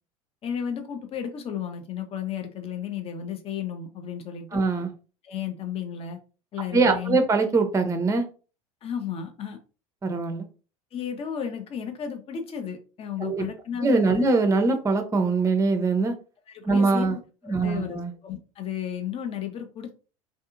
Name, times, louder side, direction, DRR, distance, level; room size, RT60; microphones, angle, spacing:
voice 1, 0.4-4.6 5.2-6.2 6.5-7.2 8.8-9.6 10.9-14.2 16.5-20.0, left 8 dB, 35° left, 7 dB, 0.6 m, -33 dB
voice 2, 4.5-4.9 6.7-8.2 10.0-10.4 13.2-13.5 13.8-16.1 16.6-17.2 17.5-18.1, right 3 dB, 20° right, 7 dB, 0.6 m, -22 dB
2.6 x 2.4 x 2.4 m, 0.35 s
hypercardioid pair, 75°, 17 cm